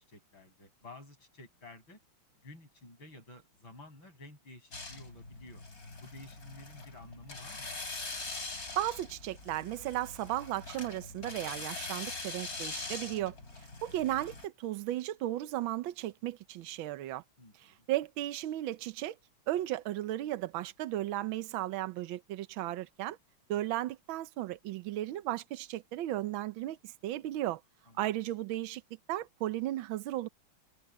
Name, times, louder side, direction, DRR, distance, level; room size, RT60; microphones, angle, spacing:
voice 1, 0.0-2.0 2.4-5.6 6.0-7.8 17.4-17.9 27.9-28.1, left 2 dB, 65° left, 8.4 m, -52 dB
sound 1, 4.7-14.5, left 3 dB, 40° left, 5.2 m, -43 dB
voice 2, 8.8-13.3 13.8-17.2 17.6-19.2 19.5-23.2 23.5-27.6 28.0-28.8 29.1-30.3, right 14 dB, 70° right, 1.5 m, -35 dB
omnidirectional pair, 2.3 m